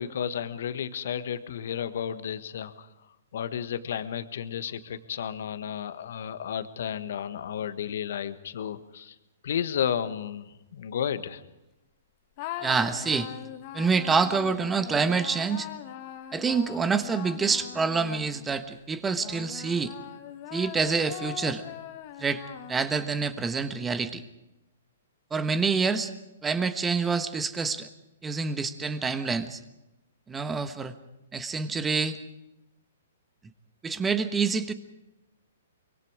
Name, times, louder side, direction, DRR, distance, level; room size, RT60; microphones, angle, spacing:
voice 1, 0.0-2.9 3.3-9.1 9.4-10.5 10.7-11.4, left 8 dB, 60° left, 12 dB, 1.4 m, -32 dB
sound 1, 12.4-18.6 19.2-23.1, left 11 dB, 40° left, 1.6 m, -41 dB
voice 2, 12.6-13.3 13.7-15.7 16.3-19.9 20.5-21.6 22.2-22.4 22.7-24.2 25.3-26.1 26.4-27.9 28.2-29.6 30.3-30.9 31.3-32.2 33.8-34.7, right 5 dB, 15° right, 11 dB, 1.3 m, -27 dB
24.5 x 22.5 x 4.9 m, 0.93 s
hypercardioid pair, 125°, 0 cm